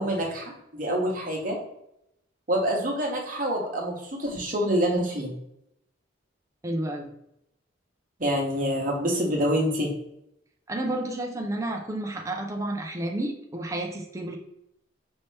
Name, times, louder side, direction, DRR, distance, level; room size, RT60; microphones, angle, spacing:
voice 1, 0.0-1.6 2.5-5.3 8.2-9.9, equal, 45° right, -1 dB, 1.1 m, -26 dB
voice 2, 6.6-7.1 10.7-14.4, right 1 dB, 15° right, 1 dB, 0.5 m, -31 dB
5.4 x 2.9 x 3.3 m, 0.80 s
head